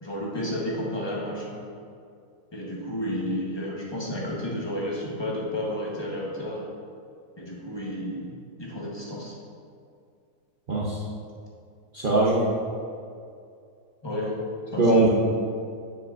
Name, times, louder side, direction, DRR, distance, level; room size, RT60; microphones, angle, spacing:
voice 1, 0.0-1.6 2.5-6.7 7.4-9.4 14.0-14.4 14.7-15.1, left 1 dB, 20° left, -4 dB, 0.7 m, -31 dB
voice 2, 11.9-12.5 14.8-15.1, right 2 dB, 75° right, -6 dB, 0.4 m, -20 dB
9.3 x 5.1 x 2.5 m, 2.4 s
omnidirectional pair, 2.0 m